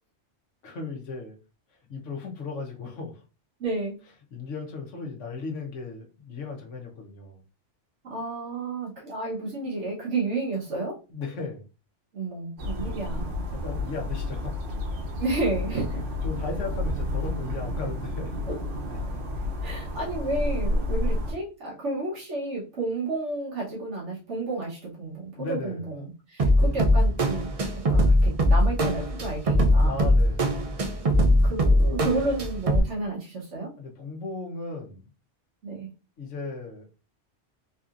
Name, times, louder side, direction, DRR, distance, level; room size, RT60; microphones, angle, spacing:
voice 1, 0.6-1.4 1.9-3.2 4.3-7.4 11.1-11.6 13.5-14.5 16.2-18.3 25.4-25.8 29.8-30.5 33.8-35.0 36.2-36.9, left 3 dB, 80° left, 1 dB, 1.3 m, -36 dB
voice 2, 3.6-4.0 8.0-11.0 12.1-13.4 15.2-16.0 18.5-18.8 19.6-26.0 26.3-27.5 27.9-30.0 31.1-33.7 35.6-35.9, right 2 dB, 75° right, -5 dB, 1.4 m, -31 dB
sound 1, 12.6-21.3, left 1 dB, 90° right, 1.3 m, -30 dB
sound 2, 26.4-32.8, equal, 45° right, 0.4 m, -21 dB
4.0 x 2.8 x 2.4 m, 0.32 s
omnidirectional pair, 1.2 m